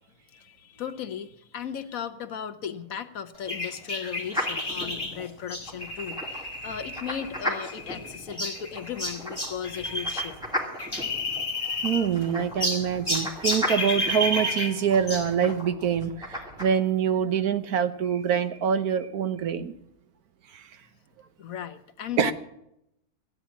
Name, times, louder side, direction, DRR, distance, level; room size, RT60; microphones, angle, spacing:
voice 1, 0.3-10.4 21.4-22.3, left 8 dB, 65° left, 8 dB, 1.3 m, -36 dB
sound 1, 3.5-10.3 10.6-12.2 12.6-15.3, left 1 dB, 15° left, 2.6 m, -31 dB
sound 2, 4.3-16.7, equal, 5° right, 2.7 m, -37 dB
voice 2, 11.8-19.7 22.2-22.3, right 7 dB, 80° right, 10 dB, 1.5 m, -25 dB
14.0 x 10.0 x 7.2 m, 0.79 s
omnidirectional pair, 1.6 m